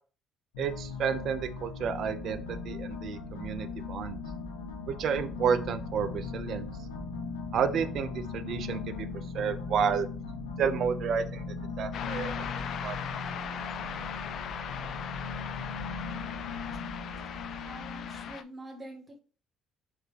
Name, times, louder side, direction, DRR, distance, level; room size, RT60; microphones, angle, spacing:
sound 1, 0.5-18.3, left 4 dB, 85° left, 0.8 m, -38 dB
voice 1, 0.6-4.2 4.9-6.7 7.5-9.1 9.3-10.1 10.6-11.4 11.8-12.4 12.8-13.0, right 7 dB, 60° right, 12 dB, 0.5 m, -31 dB
sound 2, 11.9-18.4, left 8 dB, 60° left, 0.4 m, -39 dB
voice 2, 17.6-19.2, right 1 dB, 25° right, 1 dB, 1.8 m, -46 dB
4.5 x 3.4 x 3.2 m, 0.38 s
hypercardioid pair, 55°, 0 cm